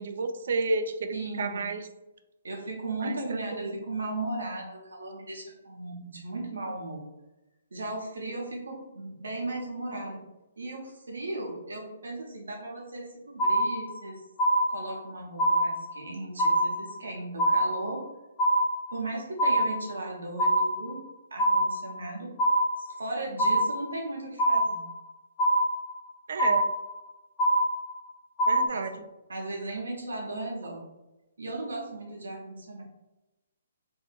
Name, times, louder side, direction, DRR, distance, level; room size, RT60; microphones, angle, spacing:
voice 1, 0.0-1.9 3.0-3.8 26.3-26.7 28.5-29.0, right 3 dB, 60° right, 8 dB, 0.3 m, -31 dB
voice 2, 1.1-1.6 2.4-7.0 7.7-10.2 10.6-14.2 14.7-18.0 18.9-21.0 21.3-22.3 22.8-24.9 28.7-28.9 29.3-30.8 31.4-32.8, right 2 dB, 80° right, -1 dB, 0.9 m, -36 dB
sound 1, 13.4-14.1 14.4-15.1 15.4-16.1 16.4-17.1 17.4-18.1 18.4-19.1 19.4-20.1 20.4-21.1 21.4-22.1 22.4-23.1 23.4-24.1 24.4-25.1 25.4-26.1 26.4-27.1 27.4-28.1 28.4-28.7, right 1 dB, 15° left, 0.6 m, -24 dB
2.7 x 2.5 x 2.4 m, 1.0 s
figure-of-eight pair, 135°, 0 cm